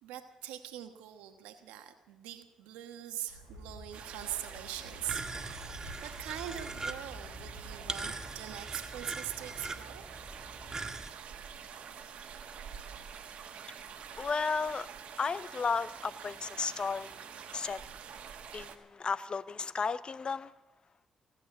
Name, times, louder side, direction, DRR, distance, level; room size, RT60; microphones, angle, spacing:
voice 1, 0.0-5.7 6.0-10.0, right 12 dB, 85° right, 8 dB, 1.2 m, -42 dB
sound 1, 3.3-10.7, left 1 dB, 90° left, 5.1 m, -51 dB
sound 2, 3.9-18.8, right 7 dB, 70° right, 1.4 m, -47 dB
sound 3, 5.0-11.1, right 3 dB, 30° right, 1.5 m, -42 dB
voice 2, 14.1-14.9 15.2-17.1 17.5-17.8 18.5-20.5, left 5 dB, 45° left, 16 dB, 0.7 m, -33 dB
17.5 x 8.3 x 9.3 m, 0.98 s
hypercardioid pair, 45°, 2 cm